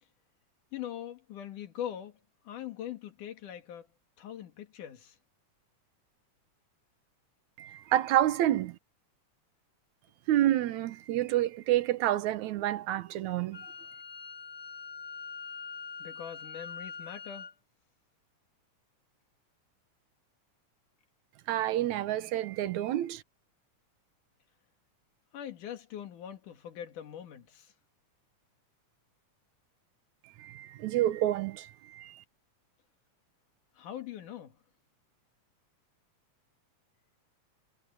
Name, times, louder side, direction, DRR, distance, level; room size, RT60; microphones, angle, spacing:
voice 1, 0.7-2.2 2.5-3.9 4.2-5.1 16.0-17.5 25.3-27.7 33.8-34.5, left 10 dB, 85° left, 3.3 m, -42 dB
voice 2, 7.6-8.8 10.3-13.7 21.5-23.2 30.4-32.2, right 13 dB, 75° right, 2.2 m, -29 dB
Wind instrument woodwind instrument, 13.5-17.5, left 5 dB, 5° left, 1.2 m, -43 dB
omnidirectional pair, 3.5 m